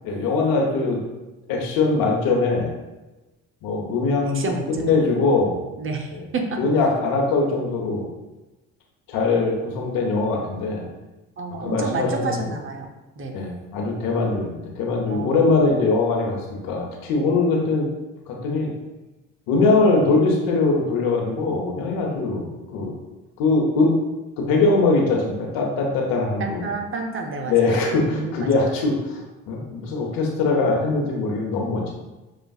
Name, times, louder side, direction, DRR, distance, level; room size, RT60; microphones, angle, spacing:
voice 1, 0.0-1.0 1.5-2.7 3.6-5.6 6.1-6.2 6.6-8.0 9.1-10.8 11.6-12.3 13.3-16.4 16.6-17.9 18.3-18.7 19.5-22.9 23.4-23.9 24.4-26.7 27.5-29.2 29.5-31.9, left 3 dB, 80° left, 0 dB, 1.0 m, -21 dB
voice 2, 4.3-4.8 5.8-6.1 6.3-6.4 11.4-12.9 13.2-13.3 15.1-15.4 26.4-27.7 28.1-28.5, right 3 dB, 35° right, 3 dB, 0.7 m, -29 dB
6.3 x 2.4 x 2.3 m, 1.1 s
supercardioid pair, 75°, 34 cm